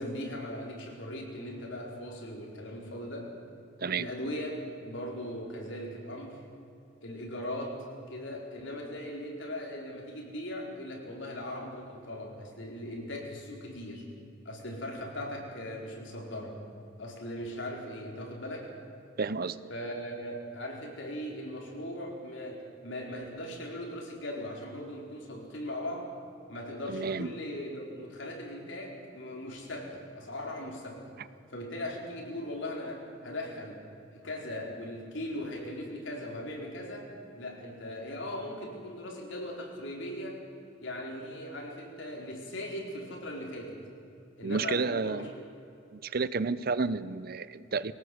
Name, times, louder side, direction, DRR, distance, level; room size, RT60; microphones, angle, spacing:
voice 1, 0.0-3.3 4.0-6.4 7.0-14.0 14.4-16.6 17.0-18.7 19.7-26.1 26.5-31.1 31.5-33.8 34.1-37.1 37.4-40.4 40.8-43.8 44.4-45.4, left 1 dB, 70° left, 0 dB, 4.6 m, -39 dB
voice 2, 19.2-19.6 26.9-27.3 44.4-45.3 45.9-47.9, right 4 dB, 50° right, 16 dB, 0.6 m, -31 dB
22.5 x 18.5 x 8.0 m, 2.7 s
head